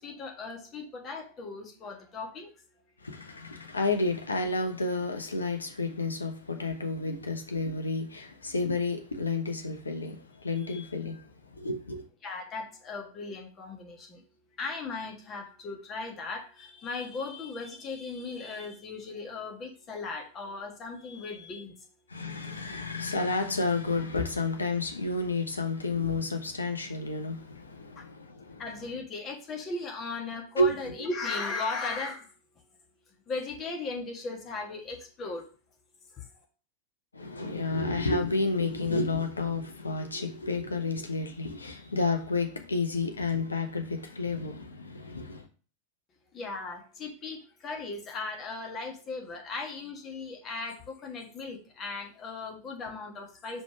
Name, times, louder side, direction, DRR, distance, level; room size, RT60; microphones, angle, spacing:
voice 1, 0.0-2.5 3.2-3.4 10.6-11.0 12.2-14.2 14.6-21.8 27.9-28.1 28.6-32.3 33.3-35.5 36.1-36.3 46.3-53.6, left 3 dB, 30° left, 1.4 m, -37 dB
voice 2, 3.0-12.1 22.1-28.6 30.6-30.8 37.1-45.5, left 3 dB, 75° left, 0.9 m, -31 dB
5.1 x 3.4 x 5.6 m
figure-of-eight pair, 90°, 0 cm